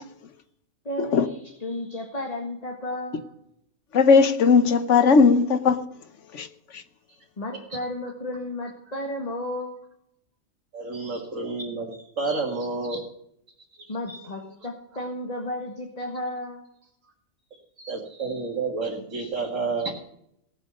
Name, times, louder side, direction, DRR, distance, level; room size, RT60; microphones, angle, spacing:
voice 1, 0.9-3.3 7.1-9.8 13.9-16.7 19.2-19.3, left 1 dB, 30° left, 1.9 m, -33 dB
voice 2, 3.9-5.8 6.3-6.5 6.7-6.8, left 5 dB, 70° left, 1.3 m, -18 dB
voice 3, 10.7-13.0 14.1-14.7 17.8-19.9, right 3 dB, 80° right, 2.2 m, -30 dB
18.0 x 8.0 x 6.4 m
omnidirectional pair, 1.3 m